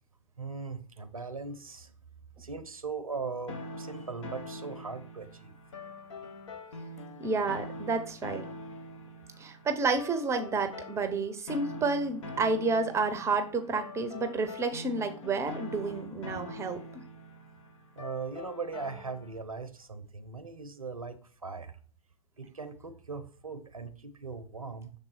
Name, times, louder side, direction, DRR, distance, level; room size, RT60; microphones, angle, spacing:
voice 1, 0.4-1.9 2.4-5.5 17.9-21.8 22.4-24.9, right 4 dB, 85° right, 11 dB, 0.7 m, -39 dB
sound 1, 3.5-19.4, left 2 dB, 60° left, 1.1 m, -44 dB
voice 2, 7.2-8.4 9.4-16.8, right 4 dB, 15° right, 8 dB, 0.7 m, -30 dB
6.8 x 3.7 x 4.1 m, 0.43 s
figure-of-eight pair, 100°, 18 cm